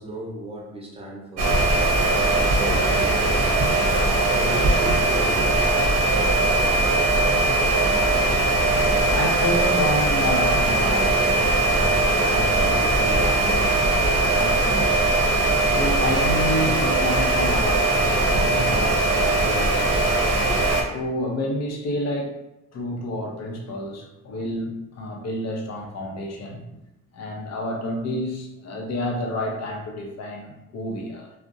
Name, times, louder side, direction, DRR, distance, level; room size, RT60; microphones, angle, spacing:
voice 1, 0.0-3.4 4.3-5.9, equal, 20° right, -2 dB, 0.7 m, -36 dB
sound 1, 1.4-20.8, right 2 dB, 55° right, 0.6 m, -20 dB
voice 2, 8.2-20.6 20.9-22.4 22.7-26.8 27.1-31.3, left 1 dB, 60° left, 1 dB, 0.6 m, -30 dB
2.4 x 2.0 x 2.6 m, 0.88 s
cardioid pair, 90°, 30 cm